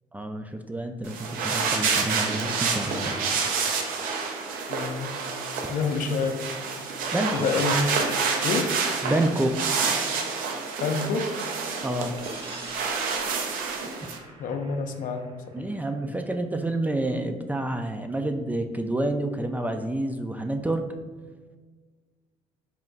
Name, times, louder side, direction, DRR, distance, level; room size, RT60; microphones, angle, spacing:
voice 1, 0.1-1.1 1.4-3.2 7.1-7.5 9.0-9.5 11.8-12.1 15.5-20.8, right 1 dB, 10° right, 6 dB, 0.3 m, -28 dB
sound 1, 1.0-14.2, right 5 dB, 75° right, 0.5 m, -28 dB
sound 2, 2.0-6.4 7.0-10.9 12.0-15.8, right 2 dB, 40° right, 1.0 m, -42 dB
voice 2, 4.7-5.1 5.7-6.4 7.3-7.9 8.4-8.7 10.8-11.3 14.4-15.7, left 4 dB, 65° left, 6 dB, 0.5 m, -27 dB
4.2 x 2.3 x 3.8 m, 1.4 s
supercardioid pair, 75°, 15 cm